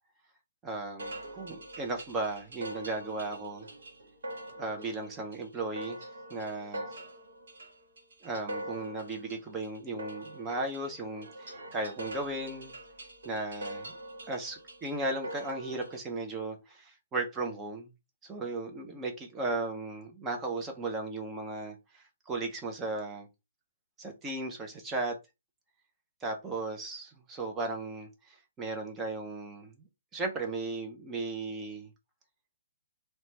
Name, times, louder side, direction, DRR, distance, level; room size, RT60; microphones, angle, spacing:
voice 1, 0.6-3.7 4.6-6.0 6.3-6.9 8.2-12.7 13.2-13.9 14.3-17.9 18.2-23.3 24.0-25.1 26.2-29.9 30.1-31.9, right 2 dB, 10° right, 0.4 m, -36 dB
sound 1, 1.0-16.0, right 1 dB, 70° right, 1.1 m, -44 dB
2.8 x 2.1 x 3.1 m
hypercardioid pair, 175°, 0 cm